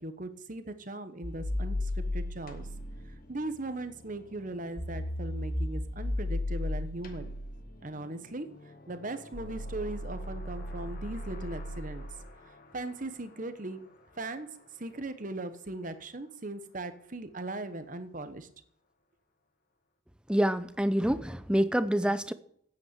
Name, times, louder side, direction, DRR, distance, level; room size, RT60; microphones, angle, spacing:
voice 1, 0.0-2.7 3.3-7.3 7.8-12.1 12.5-13.8 14.2-14.5 14.8-18.5, right 2 dB, 40° right, 1.1 m, -39 dB
sound 1, 1.2-12.5, left 1 dB, 45° left, 1.5 m, -36 dB
voice 2, 20.3-22.3, equal, 5° right, 0.5 m, -27 dB
9.3 x 8.5 x 8.2 m
head